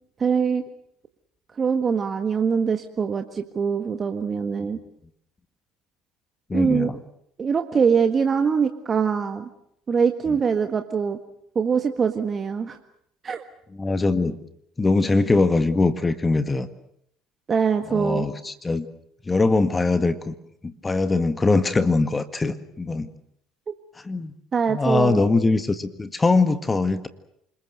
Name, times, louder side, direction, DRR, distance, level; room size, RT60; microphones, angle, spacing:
voice 1, 0.2-0.6 1.6-4.8 6.5-6.9 7.4-9.5 9.9-11.2 11.5-12.8 13.2-13.4 17.5-18.3 23.7-23.8 24.5-25.2, right 6 dB, 35° right, 7 dB, 1.6 m, -23 dB
voice 2, 6.5-7.0 13.8-14.4 14.8-16.7 17.9-18.9 19.3-20.3 20.6-23.1 24.0-24.3 24.7-27.1, left 3 dB, 20° left, 11 dB, 1.8 m, -22 dB
28.5 x 20.5 x 8.0 m, 0.73 s
hypercardioid pair, 65°, 0 cm